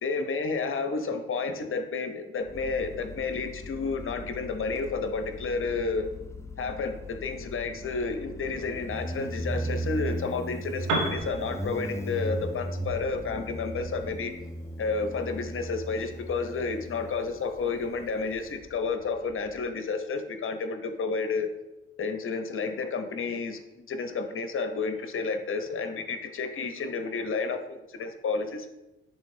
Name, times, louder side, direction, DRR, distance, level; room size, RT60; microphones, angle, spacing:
voice 1, 0.0-6.1 6.6-14.3 14.8-21.5 22.0-28.7, left 4 dB, 45° left, 7 dB, 0.9 m, -31 dB
Motorcycle, 2.5-19.7, equal, 10° left, 0.6 m, -38 dB
Piano, 10.8-18.6, right 3 dB, 75° right, 1.1 m, -39 dB
10.0 x 3.5 x 2.8 m, 0.99 s
hypercardioid pair, 50°, 30 cm